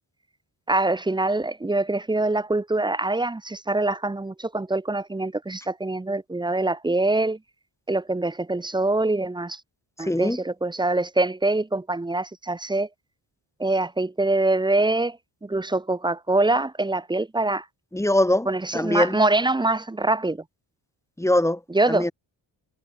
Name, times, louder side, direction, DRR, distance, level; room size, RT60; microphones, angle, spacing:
voice 1, 0.7-7.4 7.9-9.6 10.0-12.9 13.6-17.7 18.5-20.4 21.7-22.1, right 2 dB, 10° right, 0.6 m, -24 dB
voice 2, 10.0-10.4 17.9-19.2 21.2-21.6 21.9-22.1, left 1 dB, 5° left, 1.3 m, -22 dB
cardioid pair, 55°, 48 cm